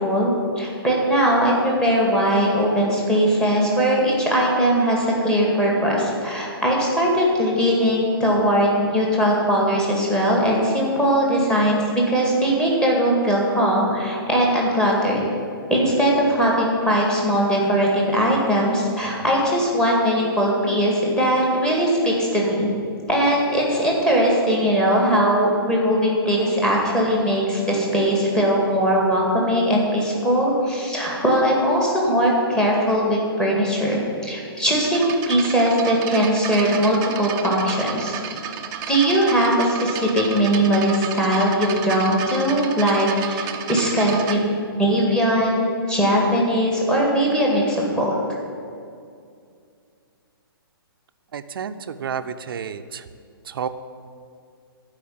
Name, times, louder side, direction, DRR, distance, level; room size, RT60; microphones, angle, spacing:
voice 1, 0.0-15.2 15.7-22.7 23.1-38.1 38.9-44.4 44.7-48.1, equal, 5° left, -3 dB, 2.0 m, -20 dB
sound 1, 34.8-44.4, right 9 dB, 25° right, 0.7 m, -32 dB
voice 2, 51.3-53.0 53.5-53.7, right 7 dB, 65° right, 10 dB, 0.6 m, -30 dB
12.0 x 5.0 x 8.7 m, 2.4 s
hypercardioid pair, 150°, 13 cm